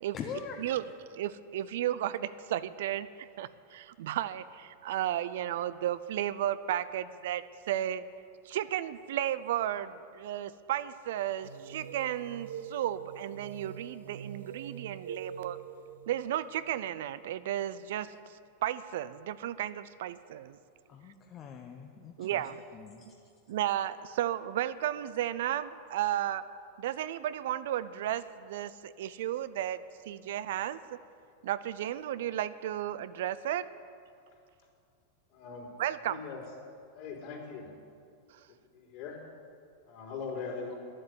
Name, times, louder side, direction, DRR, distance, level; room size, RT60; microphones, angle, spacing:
voice 1, 0.1-0.7 20.9-22.4 22.7-23.1, left 7 dB, 35° left, 3 dB, 1.0 m, -42 dB
voice 2, 1.1-8.1 8.4-15.6 16.1-20.6 22.2-22.6 23.5-26.5 26.8-29.8 30.1-30.8 31.4-33.7 35.8-36.2 38.3-38.4, right 12 dB, 70° right, 15 dB, 0.5 m, -34 dB
sound 1, 11.4-17.9, right 7 dB, 90° right, 1.3 m, -45 dB
voice 3, 35.3-35.7 36.1-36.4 36.9-37.7 38.7-39.2 39.9-40.8, left 5 dB, 55° left, -3 dB, 4.0 m, -40 dB
11.0 x 7.8 x 9.7 m, 2.4 s
hypercardioid pair, 110°, 0 cm